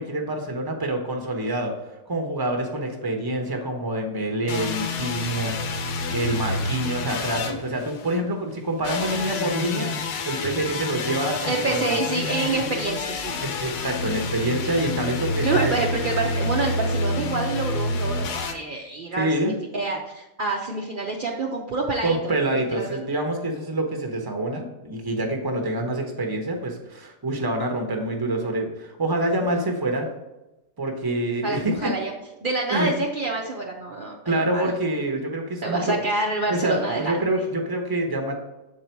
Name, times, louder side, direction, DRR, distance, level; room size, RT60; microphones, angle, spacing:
voice 1, 0.0-1.7 2.1-5.6 6.1-9.9 10.3-12.0 13.4-15.8 19.2-19.5 22.0-30.1 30.8-31.9 32.7-32.9 34.3-36.0 36.5-38.3, right 1 dB, 20° right, 3 dB, 0.7 m, -26 dB
sound 1, 4.5-8.2 8.8-18.5, left 3 dB, 70° left, 1.2 m, -28 dB
voice 2, 9.1-9.9 11.5-13.4 15.4-23.0 31.4-32.1 32.4-34.7 35.6-37.2, right 3 dB, 65° right, -1 dB, 0.5 m, -27 dB
7.6 x 4.1 x 4.5 m, 1.0 s
omnidirectional pair, 1.8 m